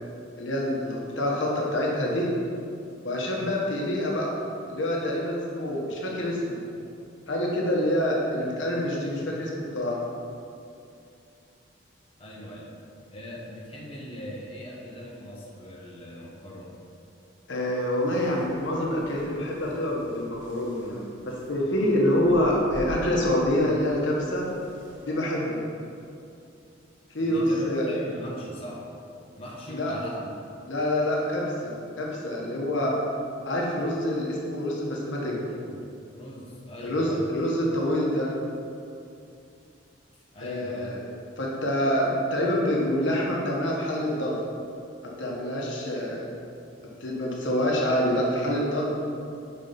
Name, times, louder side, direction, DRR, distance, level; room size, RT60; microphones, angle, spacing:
voice 1, 0.4-2.3 3.0-4.4 4.7-6.6 7.3-10.0 17.5-24.5 25.1-25.6 27.1-27.9 29.7-29.9 30.7-33.0 33.4-35.4 36.8-38.3 40.4-41.0 41.4-44.4 45.2-46.3 47.0-48.9, left 1 dB, 75° left, -3 dB, 1.1 m, -26 dB
voice 2, 12.2-12.7 13.1-16.7 27.2-28.9 29.4-30.3 35.3-35.8 36.1-37.4 40.3-40.9, equal, 30° left, -5 dB, 1.0 m, -40 dB
sound 1, 18.1-25.1, equal, 70° right, 1.0 m, -46 dB
5.8 x 4.3 x 5.3 m, 2.6 s
head